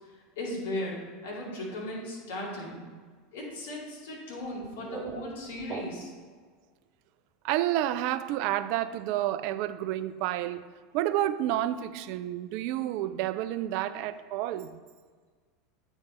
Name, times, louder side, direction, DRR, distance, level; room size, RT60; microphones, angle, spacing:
voice 1, 0.4-2.8 3.3-6.1, left 1 dB, 70° left, 2.4 m, -37 dB
sound 1, 4.4-6.3, right 5 dB, 35° right, 0.8 m, -42 dB
voice 2, 7.4-10.6 10.9-14.7, right 13 dB, 55° right, 0.4 m, -30 dB
8.7 x 4.8 x 4.3 m
figure-of-eight pair, 80°, 0 cm